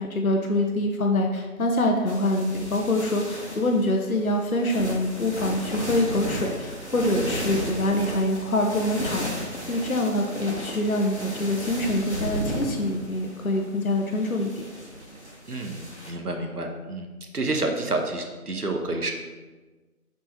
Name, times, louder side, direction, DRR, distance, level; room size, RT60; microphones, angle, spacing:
voice 1, 0.0-14.6, left 1 dB, 65° left, 2 dB, 0.8 m, -25 dB
sound 1, 2.1-16.1, equal, 45° left, 1.1 m, -35 dB
voice 2, 15.5-15.8 16.1-17.1 17.3-19.1, right 2 dB, 75° right, 3 dB, 1.0 m, -28 dB
7.3 x 4.1 x 3.5 m, 1.3 s
figure-of-eight pair, 180°, 46 cm